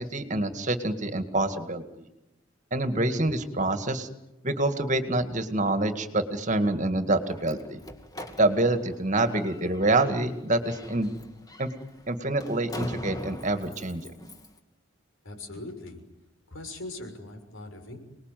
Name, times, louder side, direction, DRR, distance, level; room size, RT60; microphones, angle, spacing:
voice 1, 0.0-2.1 2.7-4.1 4.4-7.8 8.4-11.1 11.6-11.7 12.1-14.0, right 2 dB, 35° right, 9 dB, 2.0 m, -26 dB
Slam, 7.1-14.6, equal, 15° left, 2.3 m, -43 dB
voice 2, 15.2-16.0 16.5-18.0, left 2 dB, 70° left, 5 dB, 6.5 m, -40 dB
29.5 x 20.5 x 9.3 m, 0.97 s
head